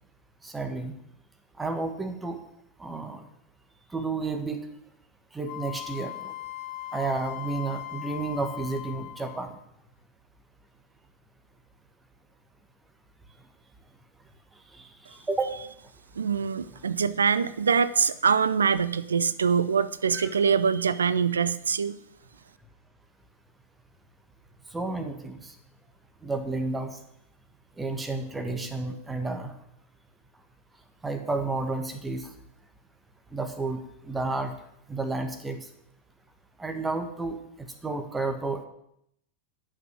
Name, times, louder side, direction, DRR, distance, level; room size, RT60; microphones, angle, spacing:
voice 1, 0.4-0.9 1.6-2.4 2.8-3.2 3.9-4.6 5.3-6.3 6.9-9.6 14.7-15.6 20.1-20.3 24.7-25.5 26.2-27.0 27.8-29.5 31.0-32.3 33.3-34.5 34.9-35.6 36.6-37.4 37.8-38.6, right 3 dB, 10° right, 7 dB, 1.8 m, -31 dB
Wind instrument woodwind instrument, 5.5-9.6, left 14 dB, 40° left, 1.1 m, -39 dB
voice 2, 16.2-22.0, right 6 dB, 70° right, 17 dB, 0.6 m, -24 dB
11.0 x 6.4 x 8.9 m, 0.75 s
figure-of-eight pair, 90°, 0 cm